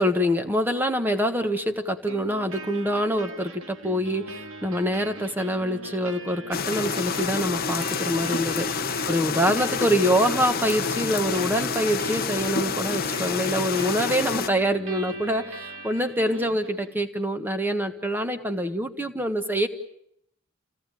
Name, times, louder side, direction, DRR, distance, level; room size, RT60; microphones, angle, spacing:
voice 1, 0.0-19.7, equal, 10° right, 7 dB, 1.4 m, -25 dB
sound 1, 2.1-17.0, right 2 dB, 70° right, 2.0 m, -41 dB
sound 2, 6.5-14.5, left 5 dB, 45° left, 0.9 m, -28 dB
28.5 x 17.5 x 9.2 m, 0.75 s
head